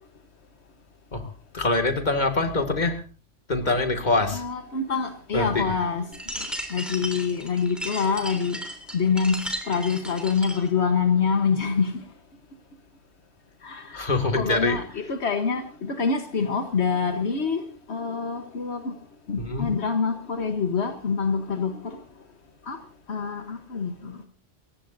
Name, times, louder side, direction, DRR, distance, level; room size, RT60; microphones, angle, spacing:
voice 1, 1.5-3.0 3.5-4.4 5.3-5.7 13.9-14.8 19.4-19.7, left 3 dB, 45° left, 2.3 m, -24 dB
voice 2, 4.3-6.1 6.4-6.5 6.7-8.6 8.9-9.4 9.7-11.9 13.6-19.0 19.3-22.0 22.7-22.8 23.1-24.3, left 5 dB, 75° left, 1.5 m, -26 dB
sound 1, 6.1-10.7, equal, ahead, 3.5 m, -35 dB
28.5 x 15.5 x 2.7 m
omnidirectional pair, 1.1 m